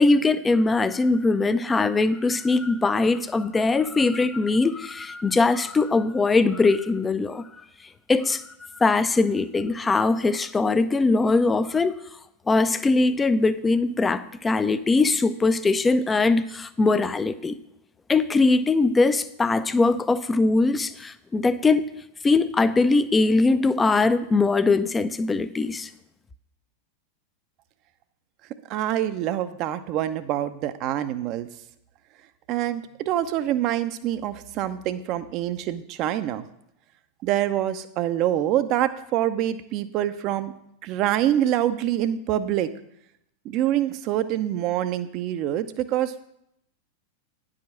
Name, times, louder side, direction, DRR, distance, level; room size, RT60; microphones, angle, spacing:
voice 1, 0.0-7.4 8.1-12.0 12.5-17.6 18.1-21.9 22.2-25.9, left 3 dB, 15° left, 13 dB, 0.5 m, -21 dB
voice 2, 28.7-31.5 32.5-36.4 37.2-40.5 40.8-42.7 43.4-46.1, right 12 dB, 40° right, 12 dB, 0.6 m, -25 dB
10.0 x 5.0 x 6.1 m, 0.77 s
figure-of-eight pair, 90°, 0 cm